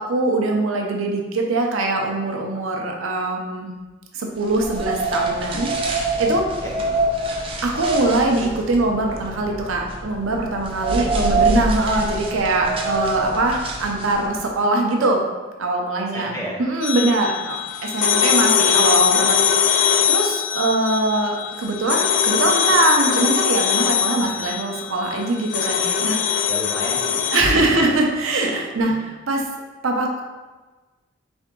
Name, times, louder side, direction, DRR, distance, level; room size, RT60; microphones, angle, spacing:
voice 1, 0.0-3.7 4.1-6.6 7.6-15.2 15.6-26.2 27.3-29.4 29.8-30.2, right 2 dB, 85° right, 1 dB, 0.7 m, -22 dB
sound 1, 4.4-14.4, right 2 dB, 25° right, 0.5 m, -25 dB
voice 2, 6.5-7.2 10.9-11.5 12.8-13.1 16.0-16.6 24.2-24.5 26.5-27.9 28.9-29.0, equal, 15° left, -6 dB, 0.9 m, -34 dB
sound 2, 16.8-27.4, left 8 dB, 55° left, 0.4 m, -21 dB
3.6 x 3.5 x 3.7 m, 1.3 s
head